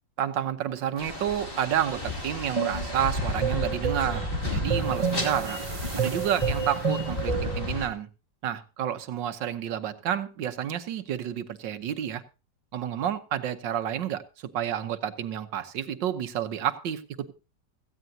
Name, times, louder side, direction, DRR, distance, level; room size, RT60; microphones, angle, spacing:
voice 1, 0.2-5.6 6.0-8.1 8.4-12.2 12.7-17.3, right 10 dB, 85° right, 1.7 m, -30 dB
sound 1, 1.0-7.9, left 2 dB, 30° left, 2.7 m, -33 dB
sound 2, 2.6-7.7, right 5 dB, 35° right, 0.5 m, -30 dB
17.0 x 15.0 x 2.7 m
omnidirectional pair, 1.9 m